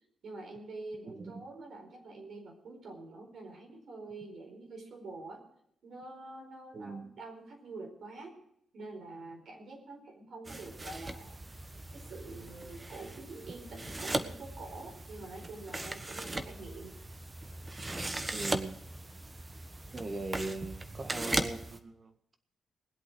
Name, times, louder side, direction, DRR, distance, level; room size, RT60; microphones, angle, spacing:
voice 1, 0.2-5.4 5.8-8.4 8.7-11.4 11.9-17.0, right 2 dB, 70° right, 2 dB, 4.6 m, -46 dB
voice 2, 1.1-1.5 6.7-7.1 18.3-18.8 19.9-22.1, right 3 dB, 45° right, 7 dB, 1.7 m, -40 dB
sound 1, 10.5-21.8, right 2 dB, 30° right, 1.3 m, -39 dB
20.0 x 8.3 x 6.2 m, 0.72 s
supercardioid pair, 50°, 0 cm